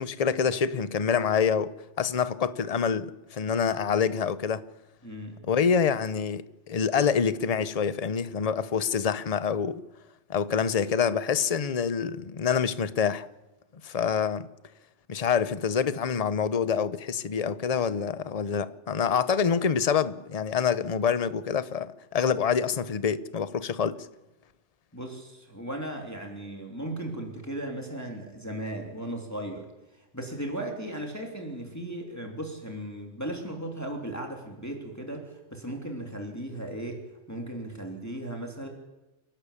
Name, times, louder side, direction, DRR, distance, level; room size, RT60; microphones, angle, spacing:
voice 1, 0.0-4.6 5.4-9.8 10.3-13.3 13.8-14.5 15.1-24.1, left 6 dB, 35° left, 0.8 m, -26 dB
voice 2, 5.0-5.4 24.9-29.7 30.0-37.0 37.3-38.7, right 1 dB, 15° left, 3.1 m, -36 dB
29.5 x 11.5 x 8.5 m
omnidirectional pair, 1.3 m